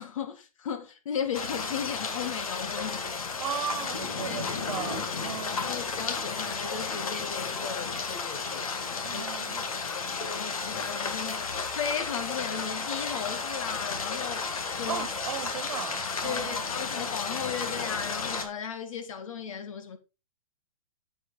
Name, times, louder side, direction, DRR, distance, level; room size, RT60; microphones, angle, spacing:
voice 1, 0.0-3.0 4.3-4.7 5.6-8.7 9.1-9.2 9.8-14.5 14.8-15.1 16.2-20.0, left 7 dB, 65° left, 2.2 m, -36 dB
sound 1, 1.3-18.4, left 4 dB, 85° left, 2.3 m, -33 dB
voice 2, 3.4-5.7 9.0-9.7 14.9-16.8, right 9 dB, 60° right, 1.6 m, -37 dB
8.4 x 8.0 x 4.1 m
hypercardioid pair, 140°, 18 cm